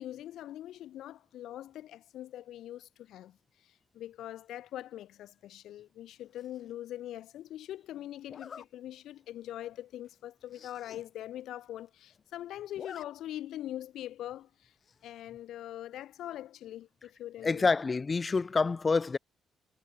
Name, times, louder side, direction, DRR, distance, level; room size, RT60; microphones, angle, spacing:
voice 1, 0.0-3.4 3.6-14.7 15.0-17.7, left 12 dB, 80° left, 0.8 m, -42 dB
Zipper (clothing), 6.3-6.7 8.3-8.7 9.2-9.4 9.7-9.8 10.1-10.2 10.4-11.0 11.4-11.5 11.7-12.2 12.5-13.1 13.4-13.5 14.8-15.2, left 7 dB, 50° left, 3.4 m, -49 dB
voice 2, 17.4-19.2, left 4 dB, 30° left, 0.7 m, -27 dB
cardioid pair, 90°, 0 cm